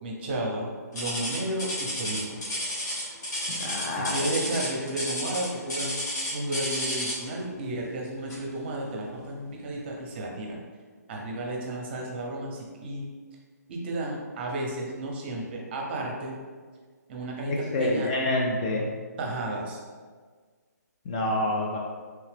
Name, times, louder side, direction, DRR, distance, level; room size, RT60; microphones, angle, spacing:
voice 1, 0.0-2.4 3.9-6.0 6.3-10.6 11.1-13.1 13.7-16.4 17.1-18.1 19.2-19.8, right 1 dB, 35° right, -1 dB, 0.7 m, -33 dB
sound 1, 0.9-7.3 8.3-8.5 9.1-9.2 9.9-10.0, equal, 70° left, 1.4 m, -31 dB
voice 2, 3.5-4.3 17.5-18.9 21.1-21.8, left 1 dB, 25° left, -1 dB, 0.3 m, -27 dB
3.3 x 2.7 x 3.3 m, 1.5 s
hypercardioid pair, 150°, 10 cm